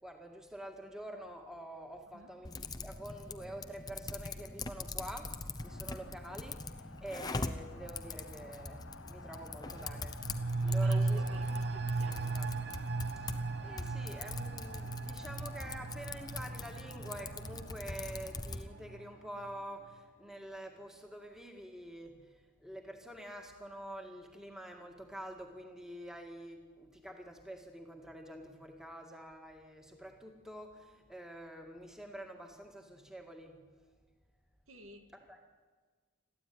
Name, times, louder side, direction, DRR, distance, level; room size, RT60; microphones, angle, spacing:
voice 1, 0.0-10.3 10.6-11.2 12.0-33.6 35.1-35.6, right 1 dB, ahead, 3 dB, 2.1 m, -47 dB
Typing, 2.4-18.7, left 3 dB, 20° left, 0.7 m, -43 dB
sound 1, 5.6-21.4, left 4 dB, 65° left, 0.9 m, -54 dB
sound 2, 9.7-19.1 19.4-19.5, right 3 dB, 50° right, 0.6 m, -36 dB
voice 2, 10.7-12.2 34.7-35.0, right 3 dB, 80° right, 7 dB, 2.1 m, -52 dB
22.0 x 14.5 x 9.6 m, 1.4 s
head